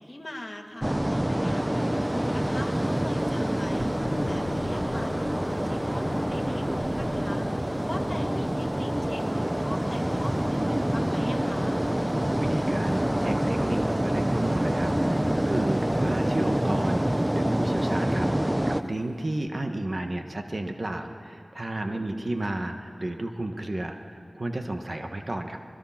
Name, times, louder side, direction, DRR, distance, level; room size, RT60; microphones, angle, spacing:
voice 1, 0.0-7.5 7.8-11.8 21.9-22.3, left 1 dB, 30° left, 2 dB, 2.1 m, -40 dB
sound 1, 0.8-18.8, right 1 dB, 15° right, 0.8 m, -26 dB
sound 2, 0.9-19.0 19.5-19.6, left 3 dB, 70° left, 0.7 m, -43 dB
voice 2, 12.4-25.6, right 1 dB, 50° right, 4 dB, 1.5 m, -32 dB
27.5 x 21.0 x 5.9 m, 2.7 s
wide cardioid pair, 60°, 0 cm